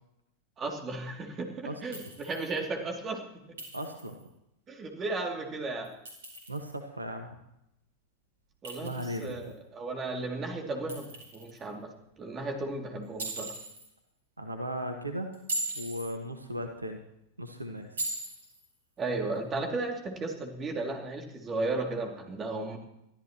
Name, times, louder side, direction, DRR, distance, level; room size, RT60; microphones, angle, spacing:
voice 1, 0.6-3.2 4.7-5.9 8.6-11.9 12.2-13.5 19.0-22.8, right 3 dB, 25° right, 2 dB, 2.8 m, -34 dB
voice 2, 1.6-2.0 3.7-4.2 6.5-7.4 8.8-9.5 14.4-15.3 15.7-17.0 17.4-18.0, equal, 80° right, 5 dB, 1.6 m, -37 dB
Chink clink, 1.9-2.6 3.6-4.2 5.8-6.7 8.7-9.5 10.9-11.6 13.2-13.9 15.3-16.1 18.0-18.6, right 2 dB, 65° right, 5.0 m, -38 dB
22.5 x 13.5 x 3.1 m, 0.83 s
figure-of-eight pair, 90°, 0 cm